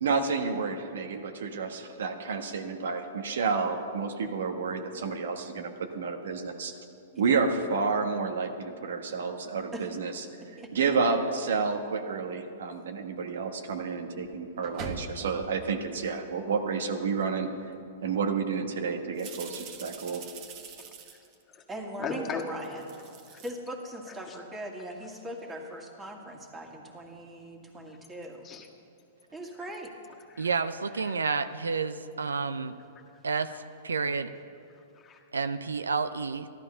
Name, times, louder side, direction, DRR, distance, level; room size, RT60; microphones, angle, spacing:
voice 1, 0.0-6.7 7.2-10.2 10.7-17.5 18.0-20.2, right 5 dB, 70° right, 5 dB, 1.3 m, -30 dB
voice 2, 10.4-10.7 21.7-22.8 23.4-28.5 29.3-29.9, right 1 dB, 15° right, 2 dB, 2.1 m, -40 dB
sound 1, 11.2-11.3 12.8-12.9 14.2-15.4 17.4-17.5 18.0-18.2 19.2-21.4 22.6-23.5, right 5 dB, 45° right, 1.5 m, -43 dB
voice 3, 22.0-22.4 22.7-23.4 24.1-24.4 27.7-28.0 28.4-28.7 29.6-29.7 30.3-30.5 30.9-31.2 33.1-33.6 34.7-35.2, left 5 dB, 25° left, 1 dB, 1.7 m, -41 dB
voice 4, 30.4-32.7 33.2-33.5 33.8-34.3 35.3-36.5, right 5 dB, 85° right, 11 dB, 0.5 m, -30 dB
14.0 x 12.0 x 5.5 m, 2.5 s
hypercardioid pair, 115°, 0 cm